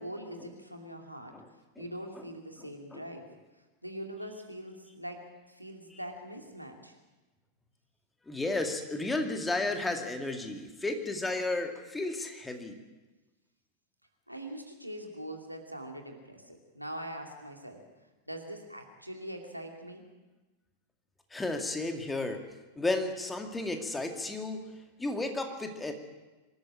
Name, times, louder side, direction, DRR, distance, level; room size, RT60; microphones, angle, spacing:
voice 1, 0.0-1.4 1.8-3.3 3.8-7.0 14.3-17.8 18.3-20.0, equal, 90° right, 3 dB, 2.6 m, -42 dB
voice 2, 8.3-12.7 21.3-22.4 22.8-24.6 25.0-25.9, left 2 dB, 10° left, 5 dB, 2.2 m, -33 dB
24.5 x 13.5 x 8.8 m, 1.2 s
figure-of-eight pair, 90°, 0 cm